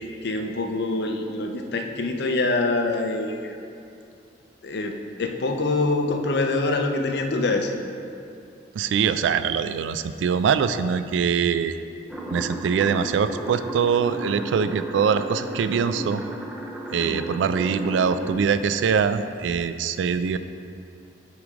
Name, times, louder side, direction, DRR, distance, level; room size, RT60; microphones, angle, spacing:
voice 1, 0.2-3.6 4.6-7.7 17.0-17.2, left 2 dB, 60° left, 4 dB, 0.5 m, -25 dB
voice 2, 8.7-11.7 12.3-16.2 16.9-20.4, right 6 dB, 80° right, 11 dB, 0.3 m, -23 dB
sound 1, 12.1-18.3, right 1 dB, 5° right, 0.5 m, -34 dB
8.3 x 3.2 x 5.0 m, 2.5 s
head